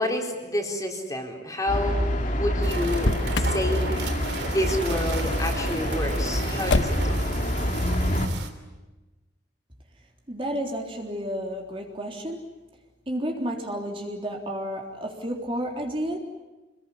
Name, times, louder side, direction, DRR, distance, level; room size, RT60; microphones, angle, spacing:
voice 1, 0.0-2.0 2.3-3.9 4.4-7.2, left 1 dB, 20° left, 2 dB, 4.2 m, -29 dB
sound 1, 1.7-8.3, equal, 45° left, 2.9 m, -26 dB
sound 2, 2.6-8.5, right 3 dB, 65° right, 3.2 m, -34 dB
Motor vehicle (road), 2.9-3.6 6.7-7.3, left 3 dB, 90° left, 1.1 m, -26 dB
voice 2, 10.3-12.4 13.1-16.2, equal, 30° right, 1 dB, 3.7 m, -31 dB
27.5 x 21.5 x 9.8 m, 1.1 s
head